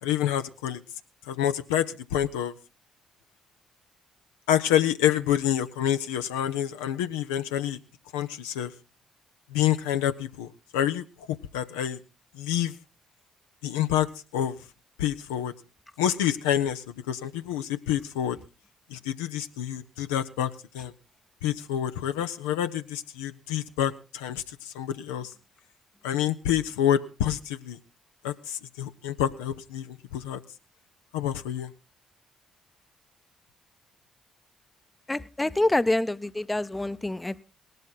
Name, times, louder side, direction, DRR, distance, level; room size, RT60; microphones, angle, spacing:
voice 1, 0.0-0.8 1.3-2.5 4.5-7.8 8.1-8.7 9.5-10.5 10.7-11.0 11.5-12.0 12.3-12.7 13.6-14.6 15.0-15.5 16.0-18.4 18.9-20.9 21.4-25.3 26.0-27.8 28.2-30.4 31.1-31.7, left 11 dB, 80° left, 8 dB, 0.6 m, -27 dB
voice 2, 35.1-37.4, left 1 dB, 15° left, 14 dB, 0.7 m, -26 dB
18.0 x 12.0 x 4.0 m, 0.32 s
hypercardioid pair, 45°, 0 cm